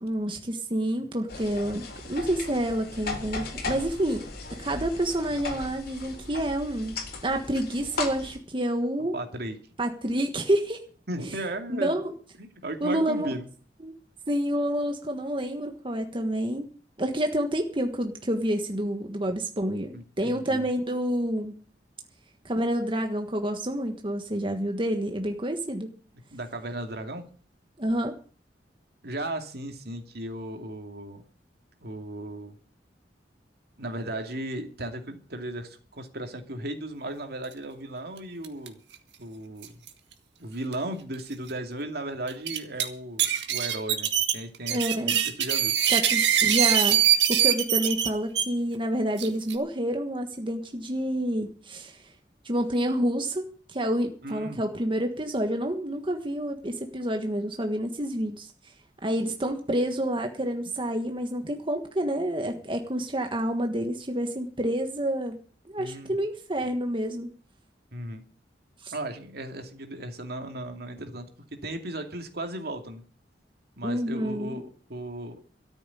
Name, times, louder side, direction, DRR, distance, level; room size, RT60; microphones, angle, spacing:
voice 1, 0.0-4.3 4.6-7.0 7.2-9.1 9.8-10.8 11.7-12.1 12.8-13.3 13.8-13.9 14.3-16.7 17.0-21.5 22.4-25.9 27.8-28.1 44.7-45.1 45.9-52.0 52.4-58.5 59.0-65.4 65.7-67.3 68.8-68.9 73.8-74.6, right 1 dB, 30° right, 4 dB, 1.5 m, -28 dB
sound 1, 1.3-8.4, left 3 dB, 60° left, 3.8 m, -37 dB
voice 2, 9.1-9.6 11.1-12.0 12.4-13.5 19.9-20.7 26.3-27.3 29.0-31.2 31.8-32.6 33.8-38.8 39.2-39.8 40.4-45.7 54.2-54.6 65.8-66.2 67.9-68.2 68.9-71.3 71.6-73.0 73.8-75.5, right 1 dB, 60° right, 5 dB, 2.5 m, -36 dB
sound 2, 38.4-38.7 38.9-39.0 39.6-39.9 40.7-40.8 41.3-41.4 42.3-42.8 43.2-48.4 49.2-49.5, right 10 dB, 80° right, 2.0 m, -23 dB
13.5 x 7.2 x 9.8 m, 0.42 s
head